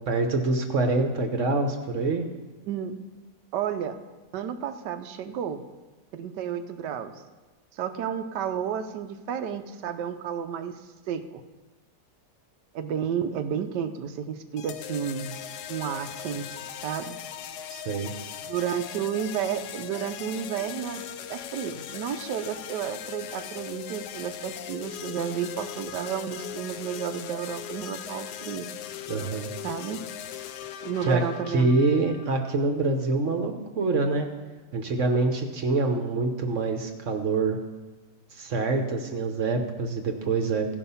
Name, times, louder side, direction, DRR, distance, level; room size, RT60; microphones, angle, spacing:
voice 1, 0.1-2.2 17.7-18.1 29.1-29.5 31.0-31.2 31.5-34.3 34.7-37.6 38.3-40.8, right 3 dB, 55° right, 4 dB, 1.1 m, -25 dB
voice 2, 3.5-4.0 4.3-5.6 6.1-7.1 7.7-10.7 11.1-11.4 12.7-15.3 15.7-17.2 18.5-28.7 29.6-30.0 30.8-31.7, right 8 dB, 85° right, 9 dB, 1.3 m, -32 dB
sound 1, 14.6-32.5, left 10 dB, 80° left, 1.1 m, -39 dB
15.0 x 5.3 x 5.5 m, 1.3 s
omnidirectional pair, 1.8 m